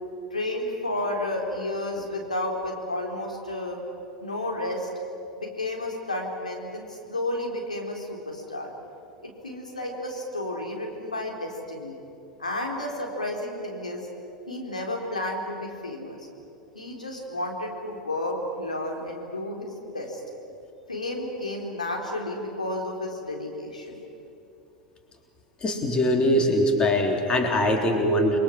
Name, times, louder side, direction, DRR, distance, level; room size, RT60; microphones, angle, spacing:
voice 1, 0.3-3.8 4.2-4.9 5.4-8.7 9.2-12.0 12.4-14.1 14.5-16.3 16.7-20.2 20.9-24.0, left 1 dB, 85° left, 0 dB, 3.8 m, -32 dB
voice 2, 25.6-28.4, left 1 dB, 25° left, 3 dB, 3.5 m, -22 dB
30.0 x 22.5 x 7.4 m, 2.7 s
figure-of-eight pair, 85°, 4 cm